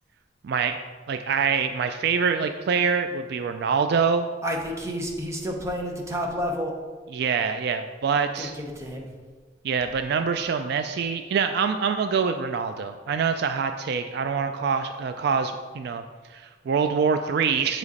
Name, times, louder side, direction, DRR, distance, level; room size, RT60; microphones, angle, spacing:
voice 1, 0.4-0.8 1.1-4.3 7.1-8.5 9.6-16.0 16.3-17.8, right 6 dB, 60° right, 8 dB, 0.3 m, -25 dB
voice 2, 4.4-6.7 8.4-8.5 8.8-9.1, equal, 15° right, 0 dB, 0.9 m, -30 dB
7.3 x 5.0 x 4.1 m, 1.4 s
head